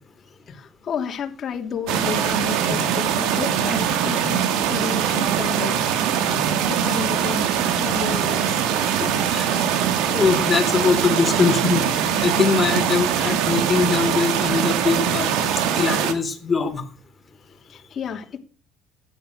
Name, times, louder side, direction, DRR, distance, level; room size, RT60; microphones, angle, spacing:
voice 1, 0.5-5.9 6.7-7.5 7.7-8.7 9.4-9.7 17.6-18.4, left 7 dB, 45° left, 3 dB, 3.1 m, -32 dB
sound 1, 1.9-16.1, right 8 dB, 75° right, 2.6 m, -22 dB
voice 2, 9.0-9.5 10.1-11.8 12.2-15.3 15.8-16.8, left 5 dB, 25° left, 6 dB, 4.0 m, -22 dB
16.0 x 11.0 x 6.7 m, 0.40 s
supercardioid pair, 100°, 0 cm